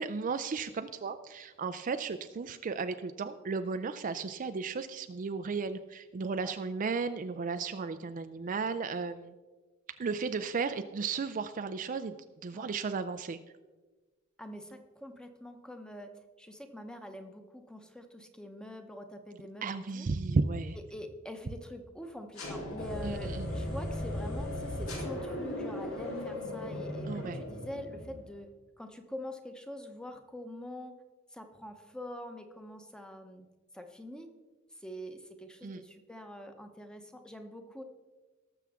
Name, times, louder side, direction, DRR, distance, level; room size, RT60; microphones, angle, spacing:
voice 1, 0.0-9.3 10.0-12.1 12.4-13.4 19.6-20.8 23.0-23.5 27.1-27.4 35.6-35.8, right 4 dB, 40° right, 9 dB, 0.4 m, -34 dB
voice 2, 14.4-16.1 16.4-20.1 20.9-28.5 28.8-30.9 31.3-33.5 33.7-34.3 34.8-37.8, equal, 5° left, 6 dB, 0.9 m, -45 dB
sound 1, 22.3-28.3, left 1 dB, 85° left, 3.6 m, -37 dB
18.5 x 7.0 x 3.6 m, 1.3 s
head